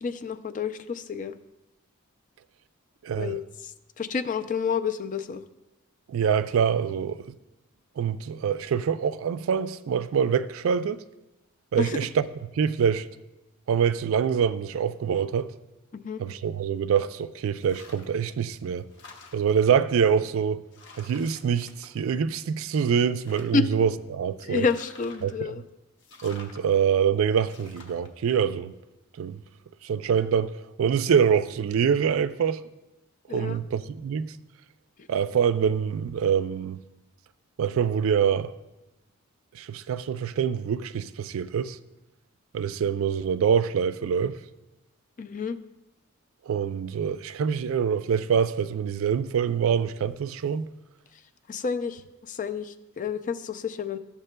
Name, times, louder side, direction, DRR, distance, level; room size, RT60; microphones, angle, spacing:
voice 1, 0.0-1.3 3.2-3.4 4.0-5.4 11.8-12.0 15.9-16.2 23.5-23.6 24.4-25.6 33.3-33.6 45.2-45.6 51.5-54.0, left 5 dB, 40° left, 0.4 m, -29 dB
voice 2, 3.0-3.4 6.1-7.3 8.0-11.0 11.7-12.3 12.5-13.1 13.7-15.5 16.2-18.9 19.3-20.6 21.0-24.7 25.2-25.5 26.2-28.7 29.2-29.4 29.8-32.6 33.3-34.3 35.1-36.8 37.6-38.5 39.5-41.8 42.5-44.4 46.5-50.7, right 7 dB, 70° right, 0.3 m, -25 dB
sound 1, 17.6-18.2 18.6-19.7 20.3-20.4 20.7-22.4 22.8-23.7 24.4-25.4 26.0-26.6 27.4-28.1, left 3 dB, 55° left, 1.0 m, -49 dB
13.0 x 7.2 x 2.2 m
head